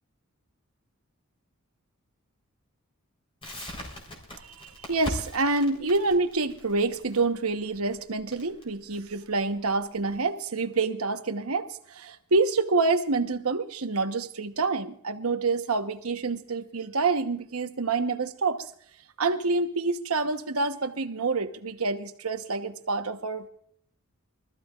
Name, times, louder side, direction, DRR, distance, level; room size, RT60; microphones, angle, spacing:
Crackle, 3.4-10.2, left 1 dB, 25° left, 3.8 m, -41 dB
voice 1, 4.6-18.7 19.2-23.5, right 3 dB, 75° right, 8 dB, 1.0 m, -27 dB
24.5 x 14.5 x 2.4 m, 0.62 s
head